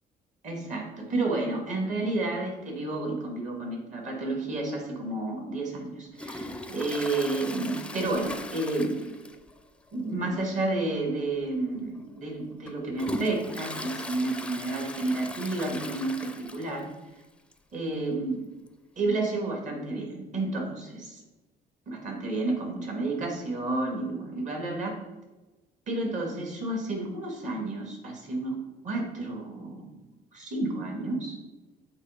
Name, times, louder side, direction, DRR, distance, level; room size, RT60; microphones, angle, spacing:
voice 1, 0.4-9.1 9.9-16.9 17.7-18.4 19.0-21.2 21.9-25.0 25.9-30.0 30.3-31.4, right 2 dB, 45° right, 1 dB, 2.0 m, -31 dB
Toilet flush, 6.2-9.6 9.9-10.0 10.4-10.5 11.3-11.5 12.0-16.9 17.2-17.3 17.5-17.6 18.7-18.8, left 1 dB, 5° left, 0.5 m, -39 dB
8.1 x 3.3 x 5.0 m, 1.1 s
cardioid pair, 110°, 17 cm